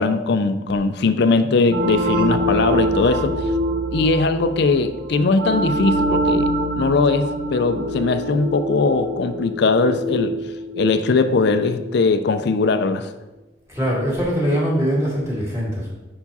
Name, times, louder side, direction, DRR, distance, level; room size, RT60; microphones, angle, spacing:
voice 1, 0.0-3.3 3.9-6.5 6.8-10.3 10.8-13.1, left 3 dB, 60° left, 10 dB, 0.4 m, -20 dB
sound 1, 1.7-12.1, right 1 dB, 55° right, 0.6 m, -25 dB
voice 2, 13.7-15.9, equal, 15° right, -6 dB, 2.1 m, -22 dB
5.6 x 4.6 x 4.1 m, 1.1 s
head